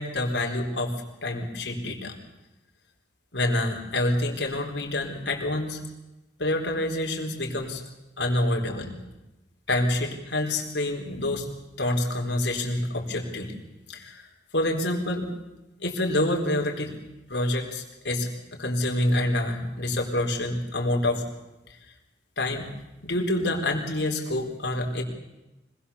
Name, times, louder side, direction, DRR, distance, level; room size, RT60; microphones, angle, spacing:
voice 1, 0.0-2.2 3.3-5.8 6.4-7.8 8.2-8.9 9.7-11.5 11.8-13.6 13.9-14.2 14.5-15.3 15.8-16.9 17.3-21.2 22.4-22.7 23.0-25.0, left 1 dB, 75° left, 1 dB, 4.1 m, -27 dB
25.5 x 20.0 x 7.1 m, 1.0 s
head